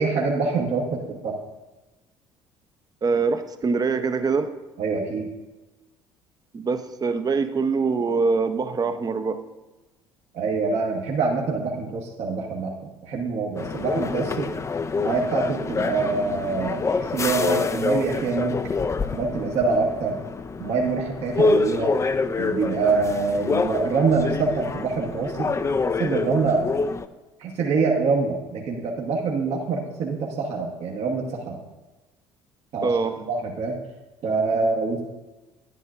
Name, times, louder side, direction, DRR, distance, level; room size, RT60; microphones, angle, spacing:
voice 1, 0.0-1.3 4.8-5.3 10.3-12.7 13.0-14.5 15.0-18.6 19.1-20.2 20.6-21.9 22.4-25.5 26.0-26.6 27.4-31.6 32.7-32.9 33.3-33.7 34.2-35.0, right 4 dB, 60° right, -1 dB, 1.2 m, -25 dB
voice 2, 3.0-4.5 6.5-9.4 32.8-33.2, right 4 dB, 30° right, 9 dB, 0.7 m, -24 dB
sound 1, 13.6-27.1, left 4 dB, 25° left, 0.4 m, -26 dB
10.0 x 9.2 x 2.5 m, 1.1 s
hypercardioid pair, 65°, 13 cm